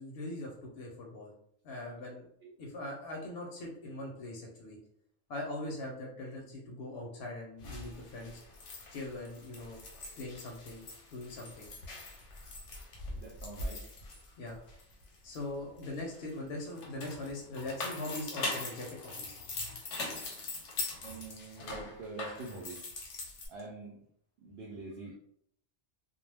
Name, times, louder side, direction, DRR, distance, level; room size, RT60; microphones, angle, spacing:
voice 1, 0.0-1.3 1.6-2.3 2.6-4.8 5.3-8.4 8.9-9.8 10.2-10.8 11.1-11.7 14.4-14.6 15.2-19.7, left 2 dB, 70° left, -1 dB, 0.8 m, -41 dB
sound 1, 7.6-15.4 15.8-23.5, left 2 dB, 85° left, 1.0 m, -42 dB
voice 2, 13.1-13.8 21.0-22.9 23.5-24.0 24.4-25.1, right 3 dB, 65° right, -2 dB, 0.7 m, -45 dB
2.2 x 2.1 x 3.2 m, 0.68 s
omnidirectional pair, 1.2 m